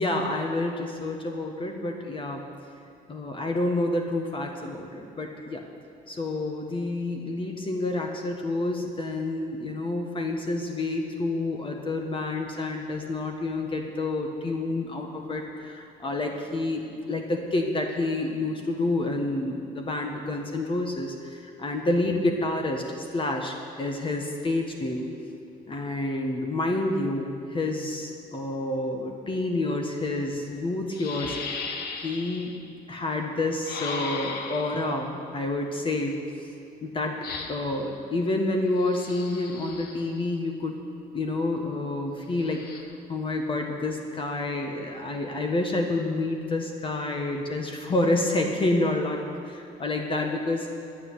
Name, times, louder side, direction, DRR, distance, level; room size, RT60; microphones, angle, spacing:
voice 1, 0.0-2.4 3.1-5.6 6.1-25.1 25.7-31.7 32.0-32.6 32.9-36.2 36.8-37.2 37.5-40.8 41.1-42.6 43.1-50.7, left 2 dB, 30° left, 3 dB, 1.4 m, -28 dB
sound 1, 30.9-32.6 33.6-35.0 37.2-37.8 38.8-40.2 42.3-42.8, left 4 dB, 70° left, 1.5 m, -37 dB
10.5 x 9.1 x 9.5 m, 2.7 s
cardioid pair, 110°, 17 cm